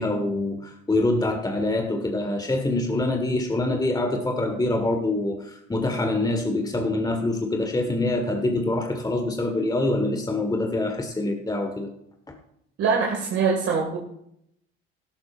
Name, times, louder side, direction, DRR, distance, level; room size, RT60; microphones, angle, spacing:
voice 1, 0.0-11.9 12.3-12.4, left 2 dB, 10° left, 4 dB, 1.6 m, -25 dB
voice 2, 12.8-14.0, right 5 dB, 50° right, -1 dB, 2.2 m, -23 dB
17.5 x 12.0 x 2.6 m, 0.75 s
figure-of-eight pair, 55°, 30 cm